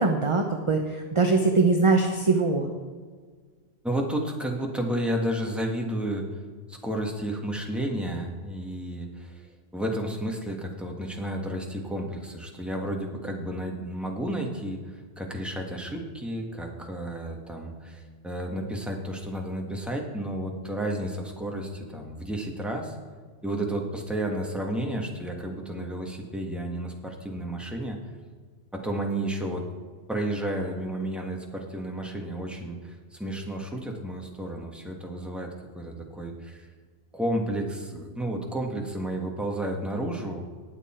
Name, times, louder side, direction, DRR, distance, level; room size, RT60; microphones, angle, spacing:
voice 1, 0.0-2.7, right 3 dB, 30° right, 3 dB, 0.8 m, -22 dB
voice 2, 3.8-6.4 6.7-9.5 9.7-23.0 23.4-28.0 28.7-29.6 30.1-36.7 37.1-40.4, right 1 dB, ahead, 0 dB, 1.6 m, -32 dB
19.5 x 6.8 x 4.5 m, 1.5 s
omnidirectional pair, 1.3 m